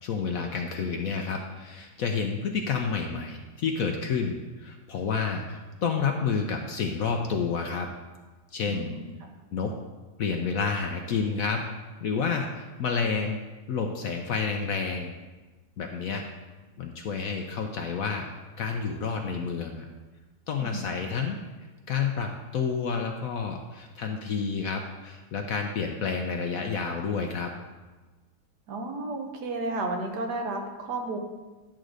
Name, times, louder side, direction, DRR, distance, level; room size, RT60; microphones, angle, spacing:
voice 1, 0.0-7.9 8.5-8.9 9.5-9.8 10.2-11.6 12.0-13.4 13.7-15.1 15.8-16.2 16.8-18.2 18.6-19.8 20.5-21.4 21.9-27.5, left 5 dB, 65° left, 3 dB, 0.9 m, -29 dB
voice 2, 8.7-9.3 20.6-21.1 28.7-31.2, right 2 dB, 65° right, 3 dB, 1.5 m, -33 dB
10.0 x 3.8 x 6.4 m, 1.2 s
omnidirectional pair, 1.9 m